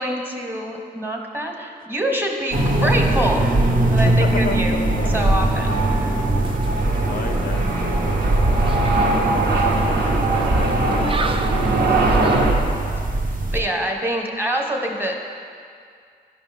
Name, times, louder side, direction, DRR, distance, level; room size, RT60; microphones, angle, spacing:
voice 1, 0.0-3.4 3.9-4.8 5.1-5.8 13.5-15.2, right 1 dB, 10° right, 2 dB, 1.0 m, -25 dB
sound 1, 2.5-13.6, right 2 dB, 55° right, 0.8 m, -21 dB
sound 2, 3.3-12.5, right 2 dB, 85° right, 0.9 m, -23 dB
voice 2, 3.9-5.3 7.0-8.3 9.8-12.1, left 6 dB, 60° left, 7 dB, 0.4 m, -33 dB
sound 3, 5.5-12.8, right 3 dB, 30° right, 0.4 m, -35 dB
9.9 x 5.5 x 3.4 m, 2.2 s
cardioid pair, 80°, 17 cm